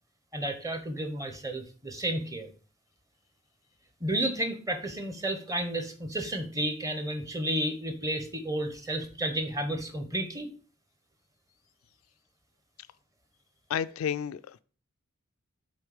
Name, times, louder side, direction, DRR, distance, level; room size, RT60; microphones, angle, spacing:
voice 1, 0.3-2.5 4.0-10.5, right 1 dB, 15° right, 0.8 m, -32 dB
voice 2, 13.7-14.6, left 8 dB, 80° left, 0.3 m, -31 dB
6.4 x 4.1 x 4.8 m
head